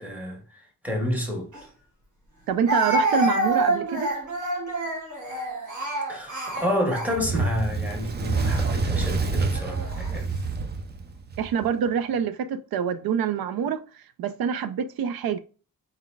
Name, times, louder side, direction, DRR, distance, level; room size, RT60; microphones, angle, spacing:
voice 1, 0.0-1.5 6.1-10.4, left 1 dB, 5° right, 1.3 m, -29 dB
Speech, 1.5-1.6 2.7-7.6 8.3-8.6 9.5-10.1, right 2 dB, 55° right, 1.3 m, -27 dB
voice 2, 2.5-4.1 11.4-15.4, right 7 dB, 85° right, 0.5 m, -26 dB
Fire, 7.1-11.7, right 4 dB, 30° right, 0.4 m, -27 dB
4.2 x 3.8 x 2.3 m
wide cardioid pair, 170°, 35 cm